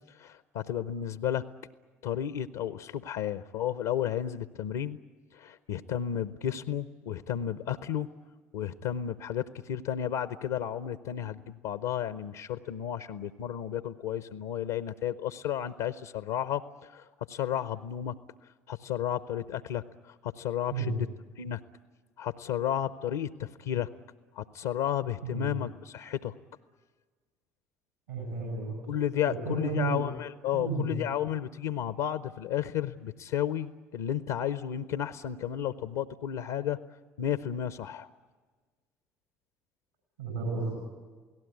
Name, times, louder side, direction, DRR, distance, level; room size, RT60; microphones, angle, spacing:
voice 1, 0.1-1.4 2.0-5.0 5.3-8.1 8.5-18.1 18.7-21.1 21.4-21.6 22.2-23.9 24.4-26.3 28.9-36.8 37.2-38.1, left 10 dB, 65° left, 13 dB, 0.7 m, -32 dB
voice 2, 25.2-25.5 28.1-28.8 29.3-30.0 30.5-30.9 40.2-40.8, right 4 dB, 80° right, 0 dB, 7.6 m, -32 dB
28.5 x 18.0 x 9.4 m, 1.4 s
figure-of-eight pair, 55°, 8 cm